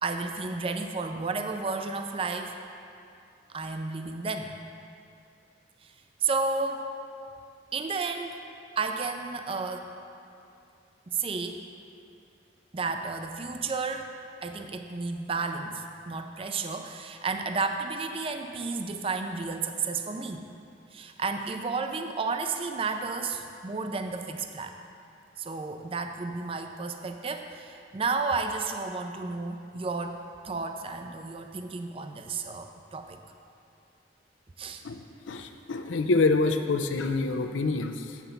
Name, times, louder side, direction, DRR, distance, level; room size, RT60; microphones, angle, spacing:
voice 1, 0.0-2.6 3.5-4.6 5.8-5.9 6.2-6.9 7.7-8.4 8.8-9.9 11.1-11.6 12.7-14.1 14.4-20.5 20.9-24.7 25.4-33.2 34.6-34.8, right 4 dB, 30° right, 6 dB, 0.4 m, -32 dB
voice 2, 34.8-38.2, left 3 dB, 90° left, 6 dB, 0.5 m, -27 dB
7.7 x 5.9 x 6.9 m, 2.5 s
head